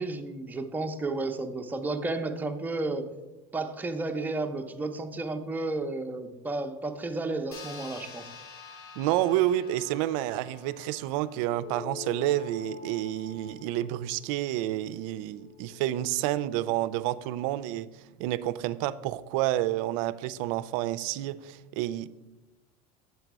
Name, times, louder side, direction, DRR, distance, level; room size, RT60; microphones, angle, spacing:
voice 1, 0.0-3.1 3.5-8.3, right 2 dB, 10° right, 5 dB, 0.5 m, -32 dB
sound 1, 7.5-12.4, left 5 dB, 85° left, 1.1 m, -48 dB
voice 2, 9.0-17.9 18.2-22.1, right 14 dB, 65° right, 16 dB, 0.4 m, -29 dB
sound 2, 11.5-16.3, left 8 dB, 35° left, 0.6 m, -46 dB
8.0 x 3.9 x 4.6 m, 1.1 s
supercardioid pair, 120°, 19 cm